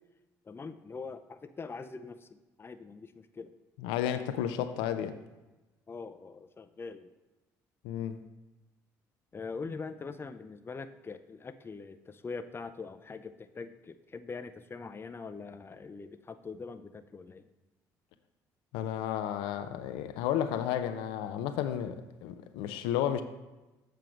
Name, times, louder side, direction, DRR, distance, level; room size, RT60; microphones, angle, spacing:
voice 1, 0.5-2.3 2.6-3.5 5.9-7.1 9.3-17.5, left 4 dB, 30° left, 0.6 m, -43 dB
voice 2, 3.8-5.2 7.8-8.2 18.7-23.2, left 10 dB, 85° left, 0.5 m, -32 dB
7.7 x 4.6 x 5.1 m
supercardioid pair, 65°, 8 cm